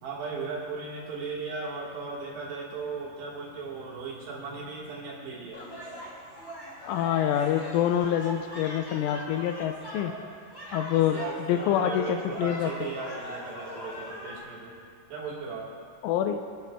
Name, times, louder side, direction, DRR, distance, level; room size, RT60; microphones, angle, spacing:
voice 1, 0.0-5.9 11.1-14.7 15.1-15.7, right 4 dB, 65° right, -4 dB, 3.2 m, -37 dB
sound 1, 5.5-14.4, equal, 15° left, 3.0 m, -41 dB
voice 2, 6.8-10.1 10.7-11.2 11.5-12.9 16.0-16.4, left 10 dB, 85° left, 5 dB, 2.9 m, -26 dB
28.0 x 10.5 x 2.2 m, 2.3 s
omnidirectional pair, 5.9 m